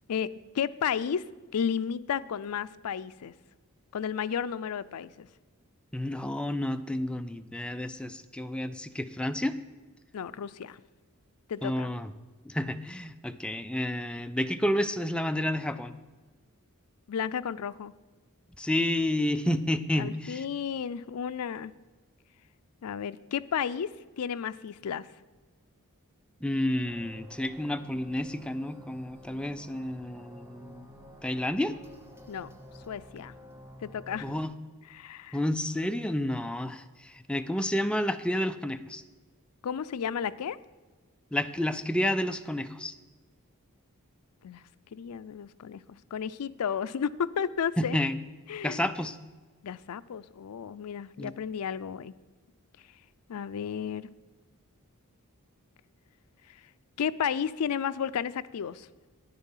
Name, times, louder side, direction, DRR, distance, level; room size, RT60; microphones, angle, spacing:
voice 1, 0.1-1.2 1.5-3.3 3.9-5.3 10.1-10.8 11.5-11.9 17.1-17.9 20.0-21.7 22.8-25.1 32.3-32.5 32.9-33.3 33.8-34.3 34.9-35.4 39.6-40.6 44.4-44.6 44.9-45.8 46.1-48.0 48.5-48.8 49.6-52.1 53.3-54.1 56.5-56.6 57.0-58.9, left 7 dB, 80° left, 15 dB, 0.4 m, -33 dB
voice 2, 5.9-9.5 11.6-12.1 12.5-15.9 18.6-20.4 26.4-30.9 31.2-31.8 34.2-34.5 35.3-39.0 41.3-42.9 47.8-48.2 48.6-49.2 51.2-51.3, left 1 dB, 5° left, 9 dB, 0.4 m, -30 dB
sound 1, 26.8-34.4, left 1 dB, 10° right, 1.0 m, -50 dB
9.8 x 9.6 x 5.6 m, 1.3 s
head